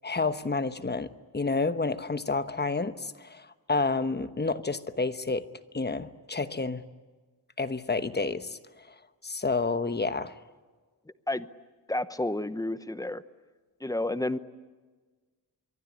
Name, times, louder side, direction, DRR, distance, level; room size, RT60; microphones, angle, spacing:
voice 1, 0.0-5.4 5.7-6.8 7.6-8.6 9.2-10.3, left 3 dB, 25° left, 11 dB, 1.1 m, -29 dB
voice 2, 11.9-13.2 13.8-14.4, left 1 dB, 10° left, 13 dB, 0.9 m, -30 dB
25.0 x 23.5 x 9.9 m, 1.4 s
wide cardioid pair, 160°, 40 cm